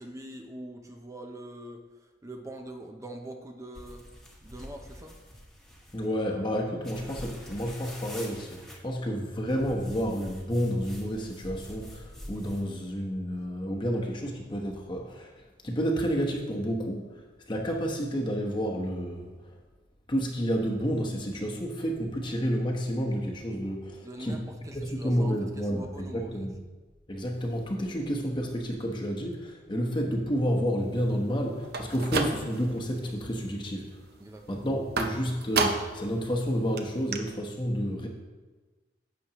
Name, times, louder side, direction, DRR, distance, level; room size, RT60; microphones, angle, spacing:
voice 1, 0.0-4.1 4.4-5.2 24.0-26.5 34.2-34.7, right 1 dB, 15° right, 4 dB, 0.6 m, -43 dB
sound 1, 3.7-6.1 6.8-8.8 9.5-12.7, equal, 5° left, 1.3 m, -45 dB
voice 2, 5.9-17.1 17.5-19.3 20.1-24.4 24.7-26.5 27.1-34.0 34.5-38.1, equal, 25° left, 0 dB, 1.0 m, -30 dB
sound 2, 31.6-32.8 33.2-33.7 35.0-36.1 36.4-36.5 36.8-36.9 37.1-37.2, right 4 dB, 55° right, 0.7 m, -30 dB
11.0 x 8.0 x 3.0 m, 1.2 s
head